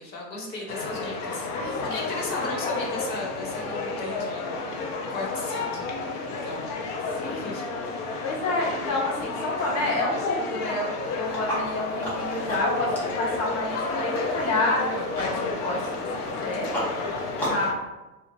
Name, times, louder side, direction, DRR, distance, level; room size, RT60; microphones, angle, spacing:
voice 1, 0.0-5.9 6.3-6.6 7.3-7.7, left 2 dB, 90° left, -2 dB, 1.0 m, -36 dB
sound 1, 0.7-17.7, left 3 dB, 70° left, 0.7 m, -31 dB
voice 2, 7.2-7.6 8.2-16.7 17.5-17.8, left 2 dB, 35° left, -3 dB, 0.8 m, -29 dB
sound 2, 11.2-17.7, equal, 5° left, 0.3 m, -36 dB
2.6 x 2.1 x 2.8 m, 1.1 s
hypercardioid pair, 100°, 48 cm